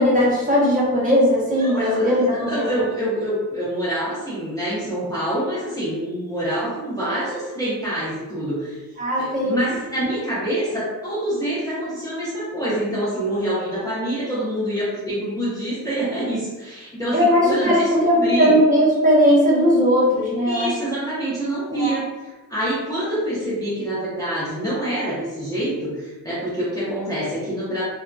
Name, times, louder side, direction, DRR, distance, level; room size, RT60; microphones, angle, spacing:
voice 1, 0.0-2.7 9.0-9.6 17.1-20.7 21.7-22.0, equal, 25° right, -6 dB, 0.7 m, -18 dB
voice 2, 1.5-8.8 9.1-18.5 20.5-27.8, right 1 dB, 10° left, -10 dB, 0.7 m, -26 dB
2.7 x 2.6 x 2.2 m, 1.2 s
wide cardioid pair, 130°, 35 cm